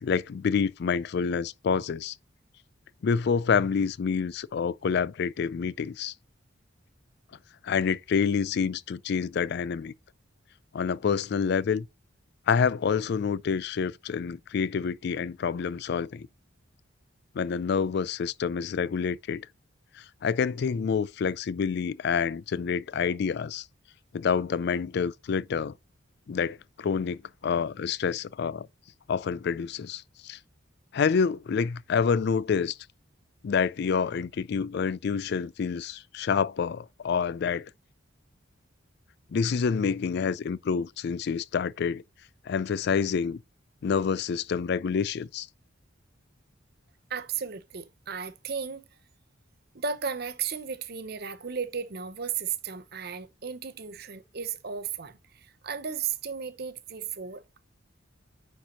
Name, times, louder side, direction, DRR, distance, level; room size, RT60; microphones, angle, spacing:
voice 1, 0.0-2.1 3.0-6.1 7.6-9.9 10.7-11.9 12.5-16.3 17.4-19.5 20.0-23.7 24.1-25.7 26.3-28.7 29.1-30.4 30.9-32.8 33.4-37.7 39.3-42.0 42.5-43.4 43.8-45.5, left 6 dB, 55° left, 0.3 m, -27 dB
voice 2, 47.1-48.9 49.7-55.2 55.6-57.6, right 6 dB, 50° right, 0.8 m, -34 dB
9.3 x 4.4 x 2.8 m
head